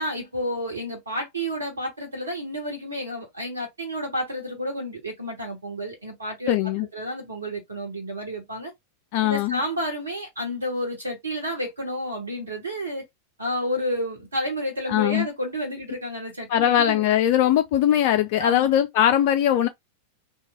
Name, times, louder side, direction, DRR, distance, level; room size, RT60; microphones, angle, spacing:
voice 1, 0.0-6.6 6.9-8.7 9.2-13.1 13.4-17.0 18.4-18.7, equal, 75° right, 1.0 m, -30 dB
voice 2, 6.5-6.9 9.1-9.6 14.9-15.3 16.5-19.7, left 11 dB, 45° left, 0.3 m, -20 dB
3.0 x 2.2 x 3.6 m
figure-of-eight pair, 90°, 0 cm